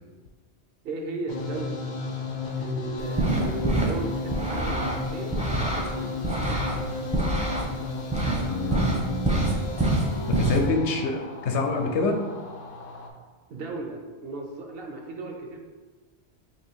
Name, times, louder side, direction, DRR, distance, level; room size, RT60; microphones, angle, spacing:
voice 1, 0.8-1.8 2.6-6.1 13.5-15.6, right 2 dB, 65° right, 1 dB, 0.7 m, -35 dB
sound 1, 1.3-13.1, left 3 dB, 55° left, 0.5 m, -34 dB
sound 2, 3.0-3.9 4.3-5.9 6.2-7.7 8.1-8.4 8.7-10.6, right 2 dB, 10° right, 0.4 m, -25 dB
voice 2, 8.2-9.5 10.3-12.2, left 3 dB, 80° left, 3 dB, 0.9 m, -27 dB
3.0 x 2.6 x 4.4 m, 1.4 s
omnidirectional pair, 1.2 m